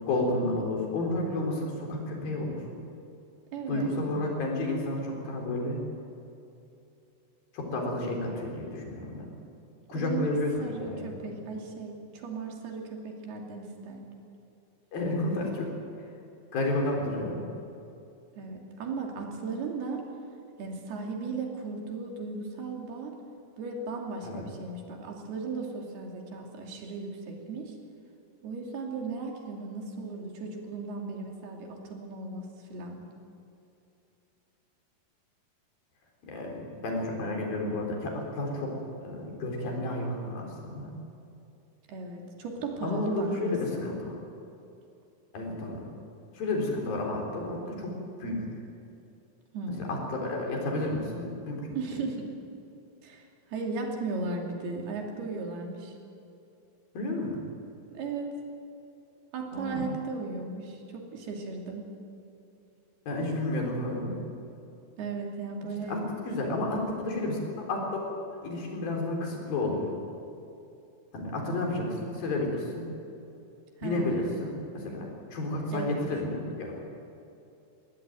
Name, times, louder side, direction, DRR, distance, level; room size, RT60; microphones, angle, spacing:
voice 1, 0.1-2.6 3.7-5.8 7.5-9.3 9.9-11.3 14.9-15.7 16.5-17.5 24.2-24.4 36.2-40.9 42.8-44.1 45.3-45.9 46.3-47.9 48.2-48.4 49.8-51.7 56.9-57.5 59.5-59.9 63.1-64.2 65.9-66.0 66.3-67.4 67.7-69.9 71.1-72.9 73.8-76.7, left 2 dB, 65° left, 0 dB, 5.7 m, -31 dB
voice 2, 3.5-4.0 9.9-10.3 10.6-14.1 18.4-20.0 20.6-23.2 23.6-27.8 28.4-33.0 41.9-43.9 49.5-49.9 51.8-52.3 53.0-56.0 57.9-58.3 59.3-61.9 65.0-66.0 71.4-71.8 73.8-74.2 75.7-76.0, right 4 dB, 80° right, 1 dB, 4.6 m, -36 dB
22.0 x 16.0 x 9.5 m, 2.7 s
omnidirectional pair, 4.5 m